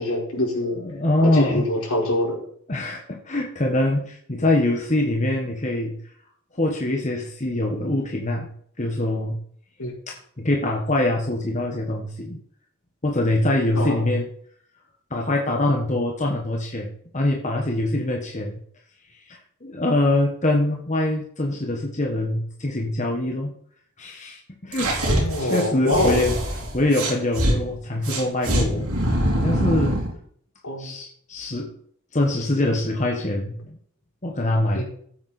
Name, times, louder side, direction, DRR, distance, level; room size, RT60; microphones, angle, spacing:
voice 1, 0.0-0.8 1.2-2.4 9.8-9.9 13.7-14.0 25.1-26.2 30.6-30.9 34.7-34.8, left 1 dB, 75° left, -3 dB, 4.8 m, -24 dB
voice 2, 0.7-1.6 2.7-6.0 6.5-8.5 8.8-9.4 10.1-12.4 13.0-14.3 15.1-18.6 19.3-23.5 24.0-26.4 26.7-28.9 29.3-30.0 30.8-31.7 32.1-33.8 34.2-34.8, left 1 dB, 35° left, 0 dB, 1.4 m, -24 dB
sound 1, 24.7-27.6 28.0-30.1, right 1 dB, 90° right, 3.5 m, -23 dB
15.0 x 8.6 x 4.3 m, 0.62 s
head